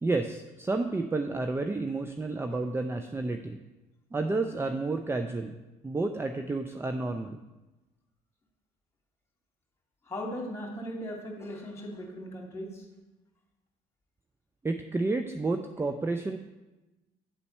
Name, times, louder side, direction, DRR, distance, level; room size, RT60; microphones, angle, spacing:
voice 1, 0.0-3.6 4.1-5.5 5.8-7.4 14.6-16.4, right 3 dB, 15° right, 6 dB, 0.5 m, -30 dB
voice 2, 10.0-12.8, equal, 15° left, -1 dB, 2.7 m, -38 dB
8.9 x 4.1 x 5.4 m, 1.1 s
hypercardioid pair, 65°, 17 cm